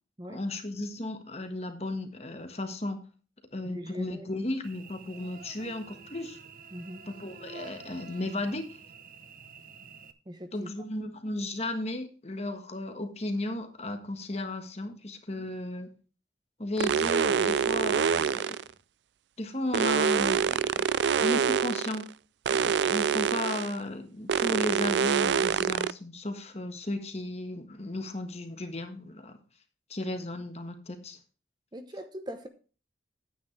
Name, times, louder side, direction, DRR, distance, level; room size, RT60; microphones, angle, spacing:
voice 1, 0.3-3.0 3.5-6.4 7.0-8.8 10.5-15.9 16.6-18.6 19.4-20.9 21.2-22.1 22.5-29.4 29.9-31.2, left 1 dB, 35° left, 1.5 m, -35 dB
voice 2, 3.6-4.3 6.7-7.0 10.3-10.7 31.7-32.5, equal, 25° right, 0.9 m, -41 dB
Cricket / Buzz, 4.6-10.1, right 5 dB, 50° right, 0.8 m, -48 dB
sound 1, 16.8-18.7 19.7-22.0 22.5-23.8 24.3-25.9, right 7 dB, 75° right, 0.4 m, -26 dB
10.5 x 9.4 x 3.3 m
head